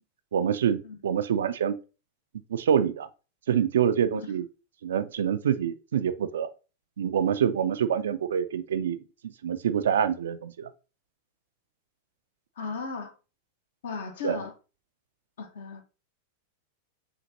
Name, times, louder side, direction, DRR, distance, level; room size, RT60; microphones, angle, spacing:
voice 1, 0.3-1.8 2.5-3.1 3.5-4.4 4.8-6.5 7.0-9.0 9.2-10.7 14.2-14.4, right 8 dB, 65° right, 0.3 m, -26 dB
voice 2, 12.6-13.1 13.8-14.5 15.4-15.8, left 5 dB, 60° left, 0.9 m, -36 dB
5.2 x 2.8 x 2.7 m
figure-of-eight pair, 90°, 0 cm